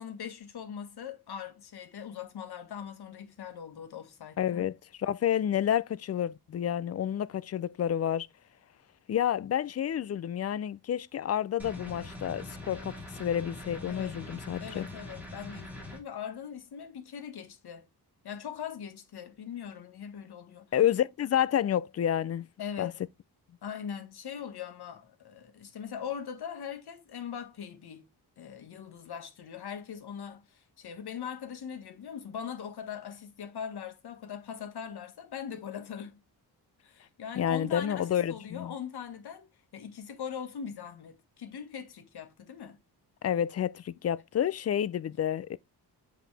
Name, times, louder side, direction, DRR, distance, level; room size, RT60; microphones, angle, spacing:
voice 1, 0.0-4.7 13.9-14.1 14.6-17.9 18.2-20.7 22.6-23.0 23.6-28.1 28.4-36.2 36.8-42.8, left 8 dB, 75° left, 1.7 m, -41 dB
voice 2, 4.4-8.3 9.1-14.9 20.7-22.4 22.8-22.9 37.4-38.7 43.2-45.6, left 10 dB, 40° left, 0.4 m, -29 dB
sound 1, 11.6-16.0, left 1 dB, 5° right, 3.3 m, -43 dB
7.8 x 5.0 x 3.3 m
wide cardioid pair, 150°, 39 cm